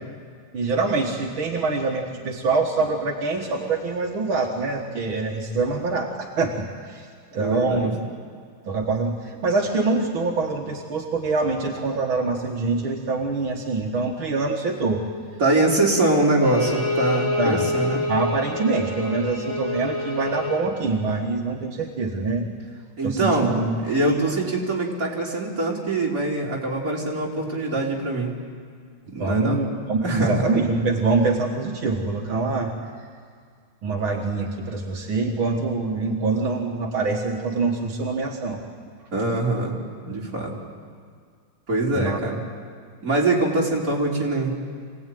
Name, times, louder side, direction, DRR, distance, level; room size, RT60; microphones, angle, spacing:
voice 1, 0.5-7.1 7.3-7.9 8.7-15.0 17.4-17.7 18.1-22.5 23.0-24.4 29.2-32.7 33.8-38.6 41.9-42.2, right 3 dB, 85° right, 0 dB, 2.4 m, -25 dB
voice 2, 7.3-7.9 15.4-18.0 23.0-23.5 23.8-28.3 29.1-29.6 30.0-30.3 39.1-39.7 40.0-40.5 41.7-42.4 43.0-44.5, right 2 dB, 45° right, -3 dB, 4.1 m, -23 dB
Bowed string instrument, 16.4-20.7, left 2 dB, 80° left, 5.7 m, -27 dB
25.5 x 18.0 x 9.2 m, 2.1 s
omnidirectional pair, 2.2 m